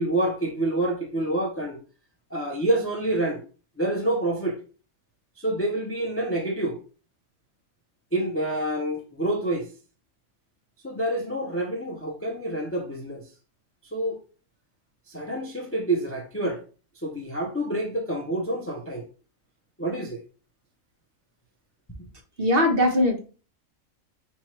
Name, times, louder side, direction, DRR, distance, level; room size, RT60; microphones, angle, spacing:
voice 1, 0.0-1.8 2.3-3.4 3.8-4.6 5.4-6.8 8.1-9.7 10.8-13.2 13.8-14.2 15.1-16.6 17.0-19.1 19.8-20.2, right 1 dB, 15° left, 0.5 m, -27 dB
voice 2, 22.4-23.2, left 1 dB, 45° right, 1.2 m, -20 dB
5.5 x 3.0 x 3.1 m
omnidirectional pair, 1.5 m